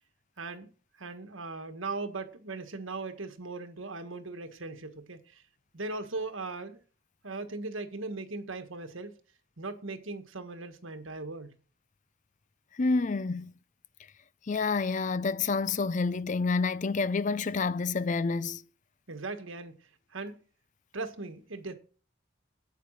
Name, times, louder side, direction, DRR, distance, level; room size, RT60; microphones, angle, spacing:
voice 1, 0.4-0.7 1.0-5.4 5.7-6.8 7.2-9.1 9.6-11.5 19.1-19.7 20.1-20.4 20.9-21.7, right 3 dB, 75° right, 1.7 m, -38 dB
voice 2, 12.8-13.5 14.5-18.6, left 4 dB, 40° left, 0.4 m, -28 dB
9.2 x 8.5 x 6.4 m
head